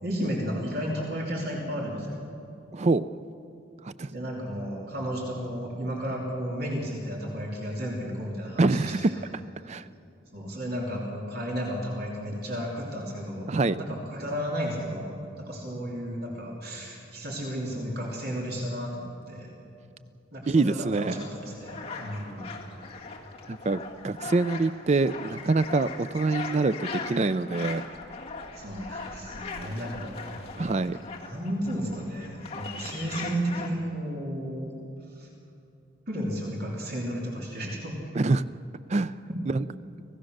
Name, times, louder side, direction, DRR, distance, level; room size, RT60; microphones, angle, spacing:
voice 1, 0.0-2.2 4.1-9.2 10.3-19.5 20.3-22.5 28.5-30.4 30.9-34.7 35.1-35.3 36.1-38.0, equal, 50° right, -3 dB, 3.2 m, -33 dB
voice 2, 2.7-3.1 3.8-4.1 8.6-9.1 9.7-9.9 13.5-13.8 20.5-21.3 23.5-27.8 30.6-31.0 38.2-38.4 38.9-39.2 39.5-39.6, right 3 dB, 35° right, 14 dB, 0.4 m, -25 dB
sound 1, 21.1-33.7, left 4 dB, 30° left, 2.0 m, -40 dB
26.0 x 17.0 x 6.6 m, 2.6 s
head